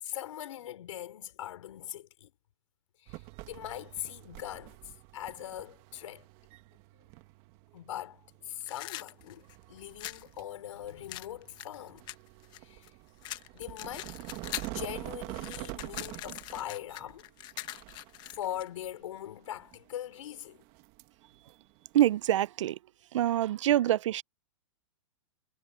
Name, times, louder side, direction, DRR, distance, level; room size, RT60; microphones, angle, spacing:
voice 1, 0.0-2.3 3.0-6.3 7.7-12.1 12.6-12.9 13.5-14.1 14.7-17.3 18.2-20.6, left 11 dB, 70° left, 4.5 m, -41 dB
sound 1, 3.1-22.5, right 21 dB, 35° right, 1.6 m, -47 dB
sound 2, 8.6-10.3 11.1-12.9 13.2-14.8 15.1-18.7, left 16 dB, 25° left, 1.1 m, -42 dB
voice 2, 21.9-22.8 23.1-24.2, right 12 dB, 70° right, 0.5 m, -25 dB
supercardioid pair, 160°, 17 cm